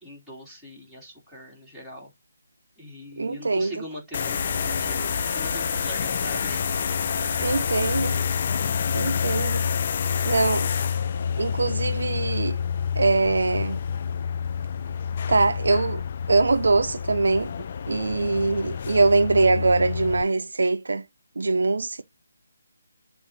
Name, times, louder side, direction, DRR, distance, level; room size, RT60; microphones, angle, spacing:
voice 1, 0.0-2.1 2.8-6.9, equal, ahead, 2.9 m, -42 dB
voice 2, 3.2-3.7 7.4-8.1 8.9-9.6 10.3-10.7 11.4-12.6 13.0-13.8 15.3-16.0 16.3-17.5 17.9-21.0 21.4-22.0, right 3 dB, 70° right, 0.7 m, -22 dB
sound 1, 4.1-20.2, left 7 dB, 40° left, 0.4 m, -28 dB
sound 2, 4.3-9.5, left 2 dB, 20° left, 2.2 m, -37 dB
7.3 x 2.7 x 5.8 m
figure-of-eight pair, 160°, 0 cm